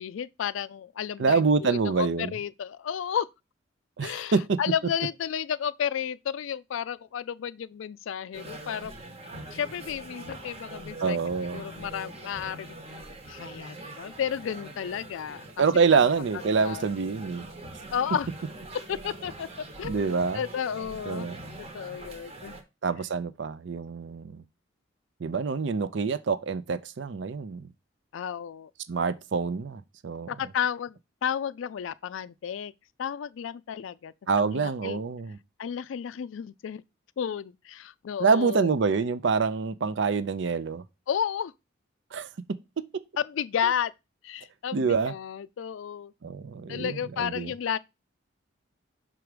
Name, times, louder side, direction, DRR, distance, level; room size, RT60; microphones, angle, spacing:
voice 1, 0.0-3.3 4.0-9.0 9.5-11.2 11.5-12.8 13.3-15.5 15.9-16.0 16.6-16.8 17.9-18.3 18.9-19.5 19.8-20.0 20.3-21.3 21.6-22.6 28.1-28.7 30.3-31.0 31.2-32.7 33.0-34.1 34.4-35.0 35.6-36.8 37.2-38.7 41.1-41.5 43.2-43.9 44.2-46.1 46.7-47.8, left 8 dB, 80° left, 0.3 m, -32 dB
voice 2, 1.2-2.3 4.0-4.6 11.0-11.6 15.6-17.5 19.8-20.4 21.1-21.4 22.8-24.4 25.2-27.7 28.9-30.3 34.3-35.4 38.2-40.8 42.1-42.3 42.8-43.0 44.7-45.1 46.2-47.5, right 5 dB, 65° right, 0.5 m, -26 dB
sound 1, 8.3-22.6, right 1 dB, 30° right, 1.0 m, -43 dB
6.1 x 4.6 x 4.9 m
head